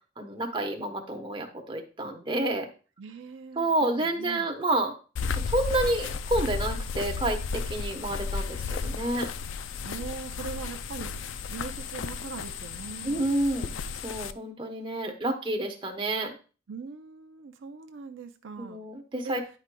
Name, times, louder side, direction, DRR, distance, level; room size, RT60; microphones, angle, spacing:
voice 1, 0.2-2.6 3.6-4.9 5.5-9.3 13.0-13.7 14.0-16.4 18.6-19.4, right 1 dB, 25° right, 4 dB, 0.9 m, -29 dB
voice 2, 3.0-4.5 9.8-13.2 16.7-18.8 19.2-19.4, right 5 dB, 75° right, 7 dB, 0.5 m, -41 dB
sound 1, 5.2-14.3, left 5 dB, 75° left, 0.4 m, -33 dB
10.0 x 4.8 x 2.2 m, 0.35 s
head